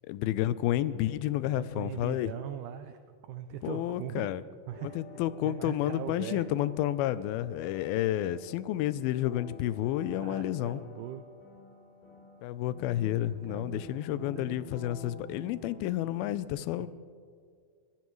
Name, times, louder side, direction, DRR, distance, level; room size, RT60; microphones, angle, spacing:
voice 1, 0.1-2.3 3.6-4.4 5.0-10.8 12.4-16.9, left 13 dB, 85° left, 16 dB, 2.4 m, -30 dB
voice 2, 1.4-3.0 3.3-4.3 4.7-5.0 5.4-6.4 10.1-11.2 13.5-14.7 16.8-16.9, right 11 dB, 85° right, 9 dB, 1.8 m, -41 dB
sound 1, 4.7-15.8, left 2 dB, 60° left, 5.7 m, -49 dB
24.0 x 16.5 x 3.1 m, 2.1 s
omnidirectional pair, 4.3 m